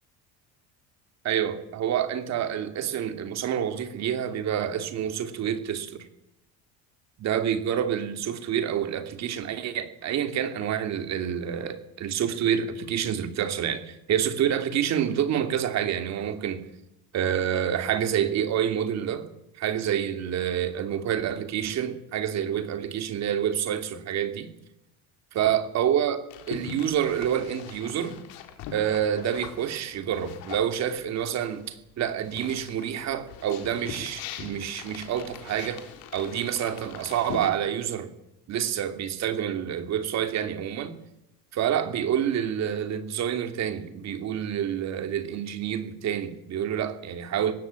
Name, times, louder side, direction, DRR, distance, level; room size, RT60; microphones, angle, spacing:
voice 1, 1.2-6.1 7.2-16.6 17.1-19.3 19.6-24.5 25.3-26.2 26.5-28.2 28.7-35.8 36.1-38.1 38.5-40.9 41.5-47.5, right 9 dB, 45° right, 2.8 m, -28 dB
sound 1, 26.3-31.7 32.0-37.5, left 7 dB, 70° left, 4.0 m, -42 dB
20.0 x 16.5 x 8.9 m
cardioid pair, 135°, 36 cm